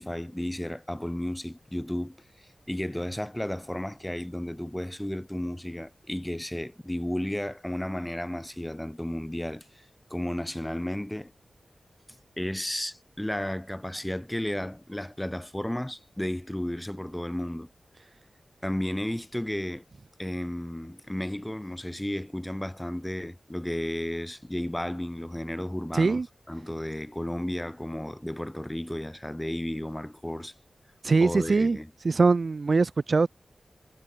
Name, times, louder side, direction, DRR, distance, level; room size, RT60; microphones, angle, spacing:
voice 1, 0.0-9.8 10.1-11.3 12.4-17.7 18.6-19.8 20.2-26.2 26.5-30.5 31.2-31.9, left 1 dB, 10° left, 3.1 m, -33 dB
voice 2, 25.9-26.3 31.0-31.8 32.0-33.3, right 4 dB, 45° right, 0.7 m, -22 dB
wide cardioid pair, 125°, 0 cm